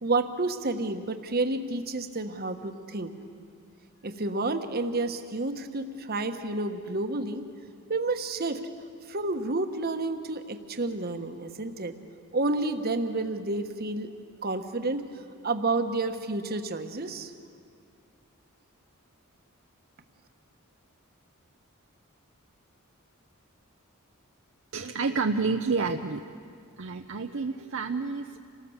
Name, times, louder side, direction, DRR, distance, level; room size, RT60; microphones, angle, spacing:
voice 1, 0.0-3.1 4.0-7.4 7.9-8.6 9.1-11.9 12.3-14.1 14.4-15.0 15.4-17.3, right 2 dB, 45° right, 7 dB, 1.3 m, -30 dB
voice 2, 24.7-26.2 26.8-28.4, right 4 dB, 60° right, 5 dB, 0.7 m, -29 dB
27.5 x 19.0 x 7.2 m, 2.3 s
head